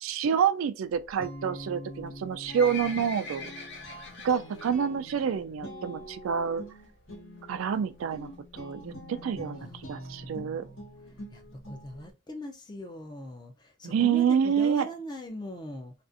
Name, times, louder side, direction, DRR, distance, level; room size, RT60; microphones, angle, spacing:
voice 1, 0.0-3.5 4.2-6.6 7.5-10.6 13.8-14.9, right 7 dB, 85° right, 0.3 m, -28 dB
Guitar, 0.8-12.1, equal, 90° left, 1.2 m, -45 dB
Livestock farm animals working animals, 2.1-4.7 5.1-5.4 5.7-5.8 6.5-6.6 6.8-6.9 7.1-7.2 7.7-8.0 8.6-8.7 8.9-9.0 9.2-9.3 9.5-9.6 10.0-10.1 10.6-10.7 11.2-11.3, left 3 dB, 60° left, 0.6 m, -42 dB
voice 2, 9.6-10.7 11.3-15.9, left 1 dB, 20° left, 0.4 m, -41 dB
2.5 x 2.4 x 2.5 m
head